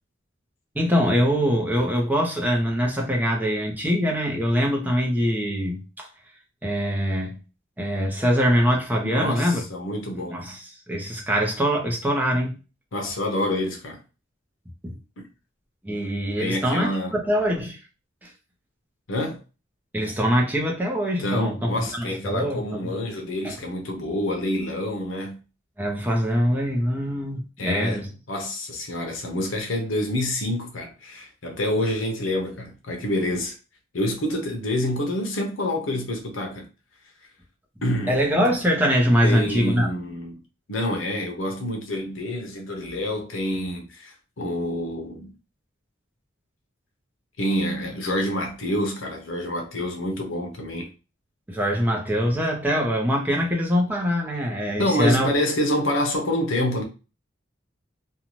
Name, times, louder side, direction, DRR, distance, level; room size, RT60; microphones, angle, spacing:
voice 1, 0.7-6.1 6.6-7.4 7.8-9.6 10.3-12.6 14.8-14.9 15.8-17.8 18.2-18.3 19.9-22.9 23.4-23.6 25.8-28.1 38.1-39.9 51.5-55.3, equal, 10° right, 0.6 m, -23 dB
voice 2, 9.0-10.4 12.9-14.0 16.4-17.2 19.1-19.4 21.2-25.4 27.6-33.6 33.9-36.7 37.8-38.2 39.2-40.3 40.7-45.3 47.4-50.9 54.8-56.8, left 1 dB, 85° left, 0.7 m, -27 dB
2.6 x 2.2 x 3.0 m
head